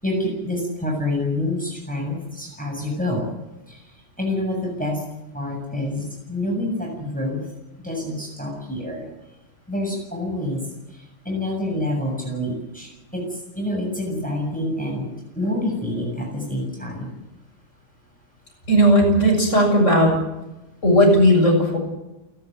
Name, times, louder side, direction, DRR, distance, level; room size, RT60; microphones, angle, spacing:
voice 1, 0.0-3.3 3.7-3.8 4.2-5.0 5.3-7.5 7.8-9.1 9.7-10.7 10.9-17.1, left 1 dB, 5° left, -1 dB, 7.4 m, -27 dB
voice 2, 18.7-20.1 20.8-21.8, equal, 35° left, 1 dB, 7.8 m, -16 dB
29.0 x 12.0 x 9.4 m, 0.98 s
omnidirectional pair, 2.3 m